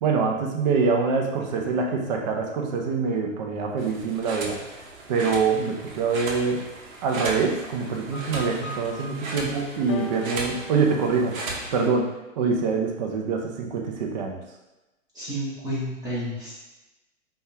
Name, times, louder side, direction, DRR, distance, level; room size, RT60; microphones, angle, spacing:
voice 1, 0.0-4.6 5.1-6.6 7.0-11.4 11.7-14.4, right 5 dB, 35° right, 2 dB, 0.4 m, -25 dB
sound 1, 3.8-11.9, right 2 dB, 80° right, 0.8 m, -36 dB
sound 2, 8.1-11.5, left 2 dB, 55° left, 0.7 m, -39 dB
voice 2, 15.1-16.5, equal, 10° right, -9 dB, 0.7 m, -30 dB
3.4 x 2.2 x 2.7 m, 1.0 s
hypercardioid pair, 130°, 40 cm